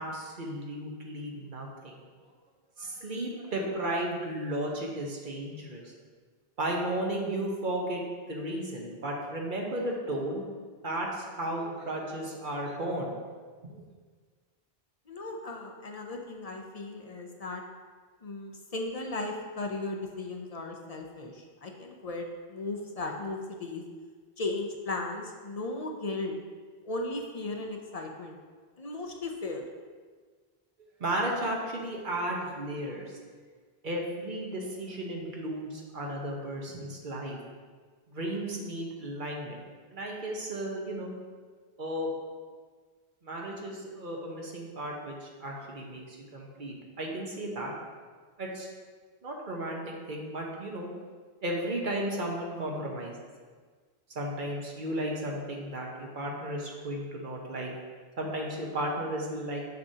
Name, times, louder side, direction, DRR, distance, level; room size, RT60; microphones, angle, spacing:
voice 1, 0.0-2.0 2.8-5.9 6.6-8.0 8.3-10.4 10.8-13.2 13.6-13.8 31.0-33.2 33.8-37.4 38.1-39.6 39.9-41.1 41.8-42.1 43.2-47.7 48.4-48.7 49.2-50.9 51.4-53.2 54.1-57.7 58.2-59.6, right 1 dB, 55° right, -1 dB, 1.1 m, -34 dB
voice 2, 15.1-17.6 18.2-23.8 24.4-26.4 26.8-28.4 28.8-29.7, left 2 dB, 45° left, 2 dB, 0.6 m, -36 dB
6.8 x 6.5 x 2.8 m, 1.5 s
omnidirectional pair, 1.0 m